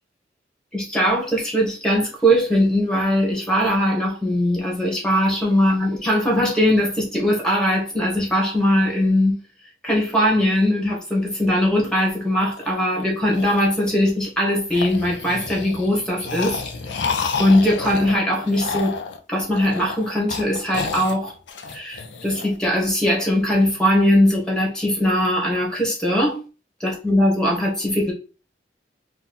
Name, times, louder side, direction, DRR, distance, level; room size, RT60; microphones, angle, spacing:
voice 1, 0.7-9.4 9.8-17.0 17.4-19.0 19.3-21.3 21.7-26.4 26.8-28.1, equal, 5° left, 1.5 m, -20 dB
sound 1, 12.4-14.3 14.7-22.5, left 5 dB, 90° left, 0.7 m, -31 dB
4.2 x 2.3 x 4.1 m
head